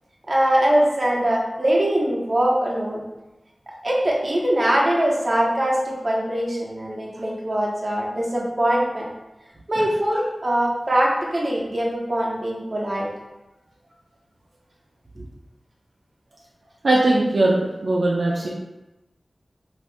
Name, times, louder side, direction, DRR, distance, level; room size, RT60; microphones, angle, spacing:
voice 1, 0.3-3.0 3.8-9.1 9.7-13.1, right 1 dB, 40° right, -3 dB, 0.7 m, -22 dB
voice 2, 16.8-18.5, right 2 dB, 75° right, -4 dB, 0.4 m, -20 dB
2.7 x 2.4 x 3.4 m, 1.0 s
wide cardioid pair, 60°, 0 cm